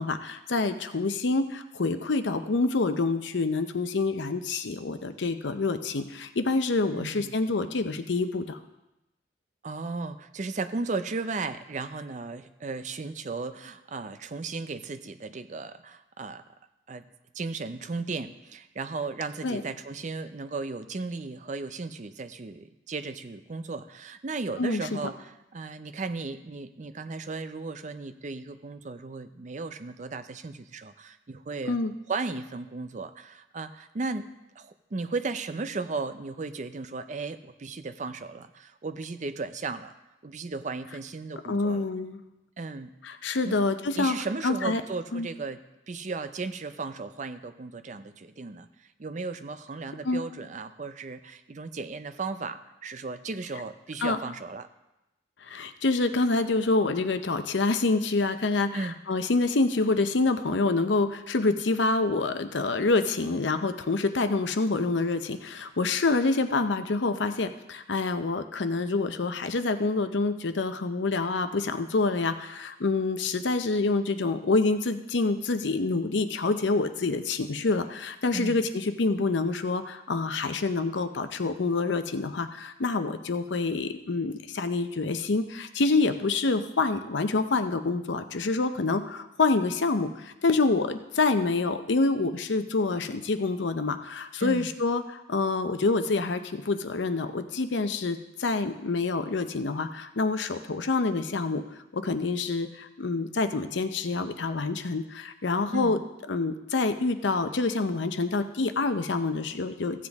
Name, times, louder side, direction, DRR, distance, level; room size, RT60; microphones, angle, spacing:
voice 1, 0.0-8.6 19.4-19.6 24.6-24.8 31.7-31.9 41.5-42.2 43.0-44.1 44.4-44.8 45.1-45.3 50.0-50.2 54.0-54.2 55.4-101.6 101.9-106.0 106.3-110.1, left 3 dB, 75° left, 9 dB, 0.7 m, -27 dB
voice 2, 6.9-7.3 9.6-16.4 16.9-17.0 17.3-31.8 32.1-34.3 34.6-39.9 40.2-41.8 42.6-42.9 43.4-43.6 44.0-45.6 45.9-54.7 58.7-59.0 78.3-78.6 94.4-94.7 105.7-106.0, right 3 dB, 40° right, 10 dB, 0.5 m, -35 dB
15.0 x 7.5 x 3.5 m, 0.95 s
head